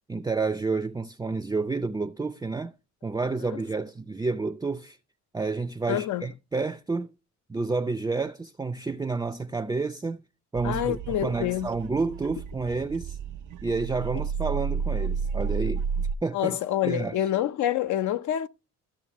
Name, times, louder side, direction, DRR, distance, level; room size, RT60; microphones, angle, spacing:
voice 1, 0.1-2.7 3.0-5.0 5.3-7.1 7.5-10.2 10.5-13.2 13.6-15.8 16.2-16.6 16.8-17.2, right 3 dB, 10° right, 0.5 m, -30 dB
voice 2, 5.9-6.3 10.6-11.7 16.3-18.5, left 12 dB, 75° left, 0.7 m, -27 dB
sound 1, 10.5-16.1, right 6 dB, 80° right, 0.7 m, -31 dB
14.0 x 6.5 x 3.0 m
cardioid pair, 90°, 30 cm